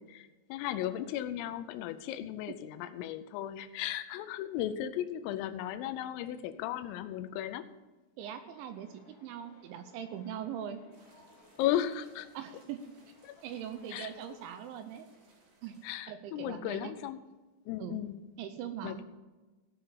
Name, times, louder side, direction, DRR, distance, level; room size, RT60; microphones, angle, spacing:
voice 1, 0.0-7.7 11.6-12.3 13.2-13.4 13.9-14.1 15.8-17.2 17.7-18.2 18.8-19.0, left 11 dB, 90° left, 11 dB, 3.3 m, -35 dB
sound 1, 8.2-14.5, left 2 dB, 55° left, 3.3 m, -61 dB
voice 2, 8.2-10.8 12.3-12.8 13.4-15.1 15.6-15.8 16.1-16.9 17.8-18.0 18.4-19.0, right 9 dB, 80° right, 9 dB, 2.8 m, -41 dB
sound 2, 10.9-15.9, right 3 dB, 60° right, 4.4 m, -64 dB
17.0 x 5.7 x 6.8 m, 1.3 s
omnidirectional pair, 5.8 m